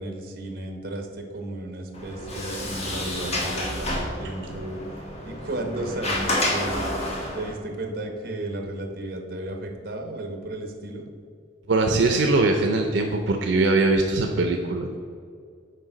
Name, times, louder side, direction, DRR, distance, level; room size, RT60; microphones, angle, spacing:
voice 1, 0.0-4.8 5.2-6.8 7.3-11.0, right 1 dB, 55° right, 4 dB, 0.9 m, -34 dB
Sliding door, 1.9-7.5, left 1 dB, 35° left, 1.2 m, -29 dB
voice 2, 11.7-15.0, right 2 dB, 80° right, 4 dB, 0.5 m, -21 dB
6.7 x 4.4 x 5.0 m, 2.2 s
head